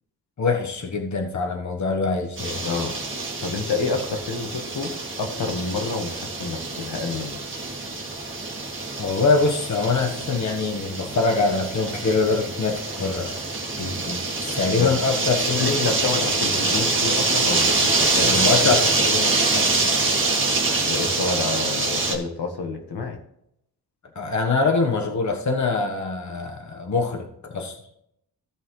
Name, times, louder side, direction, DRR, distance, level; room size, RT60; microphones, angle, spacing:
voice 1, 0.4-2.6 9.0-13.4 14.4-16.3 18.2-19.9 24.1-27.8, left 4 dB, 45° left, 2 dB, 1.3 m, -24 dB
sound 1, 2.4-22.1, right 3 dB, 30° right, 2.0 m, -25 dB
voice 2, 2.6-3.0 3.4-4.9 5.2-7.4 13.8-14.2 14.5-14.9 15.6-18.7 20.8-23.2, left 3 dB, 75° left, 4 dB, 1.6 m, -29 dB
16.0 x 5.6 x 3.2 m, 0.76 s
wide cardioid pair, 120°, 40 cm